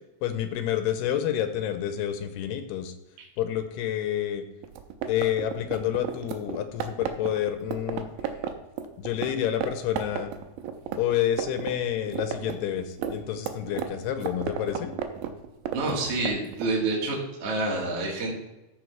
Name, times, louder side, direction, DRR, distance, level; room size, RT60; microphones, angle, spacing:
voice 1, 0.2-2.9 3.4-4.4 5.1-8.4 9.0-10.3 11.0-14.9, left 10 dB, 85° left, 9 dB, 2.7 m, -29 dB
sound 1, 4.6-9.3 9.6-9.7 10.0-11.7 12.0-16.7, right 10 dB, 75° right, 2.2 m, -32 dB
voice 2, 15.7-18.3, right 2 dB, 45° right, -3 dB, 2.2 m, -28 dB
14.0 x 4.7 x 4.5 m, 0.98 s
omnidirectional pair, 4.9 m